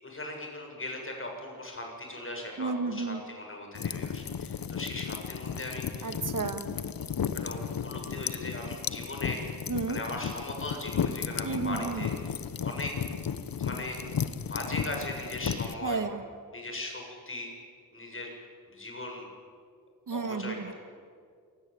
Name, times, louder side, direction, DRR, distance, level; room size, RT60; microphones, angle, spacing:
voice 1, 0.0-6.2 7.4-9.5 9.9-12.3 12.6-12.9 13.6-14.0 14.5-16.0 16.5-17.5 17.9-18.3 18.7-19.3 20.1-20.7, left 1 dB, 35° left, 1 dB, 7.5 m, -39 dB
voice 2, 2.6-3.2 6.0-6.8 9.7-10.0 11.4-12.0 15.8-16.2 20.1-20.7, right 4 dB, 55° right, 9 dB, 1.9 m, -32 dB
sound 1, 3.7-15.7, left 7 dB, 65° left, 1.2 m, -34 dB
28.0 x 20.0 x 8.7 m, 2.2 s
cardioid pair, 80°, 37 cm